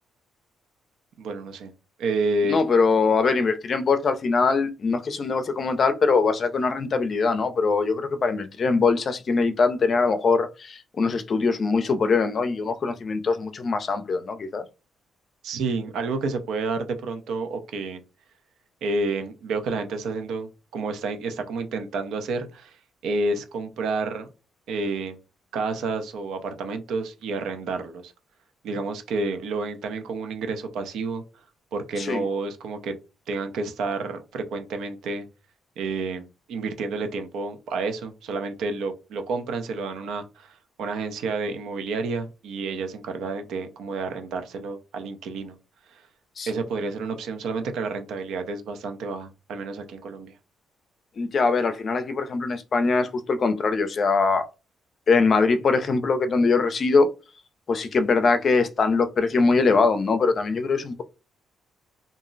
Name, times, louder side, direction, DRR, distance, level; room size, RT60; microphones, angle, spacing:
voice 1, 1.2-1.7 2.0-2.6 15.4-18.0 18.8-24.3 24.7-25.2 25.5-28.1 28.6-31.2 31.7-33.0 33.3-35.3 35.8-45.6 45.9-46.0 46.5-50.3, right 3 dB, 80° right, 0.6 m, -30 dB
voice 2, 2.5-14.6 32.0-32.2 46.4-46.5 51.2-54.4 55.1-57.1 57.7-61.0, left 4 dB, 40° left, 0.5 m, -22 dB
2.5 x 2.0 x 3.8 m
cardioid pair, 130°, 0 cm